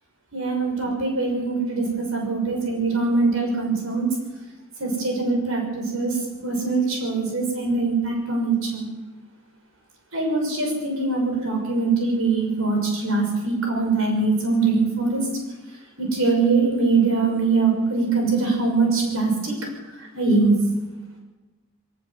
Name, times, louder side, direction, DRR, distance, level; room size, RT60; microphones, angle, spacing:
voice 1, 0.3-4.1 4.8-6.1 6.4-8.8 10.1-15.2 16.0-19.5 20.1-20.5, right 3 dB, 70° right, 2 dB, 6.0 m, -22 dB
23.0 x 15.0 x 7.6 m, 1.1 s
head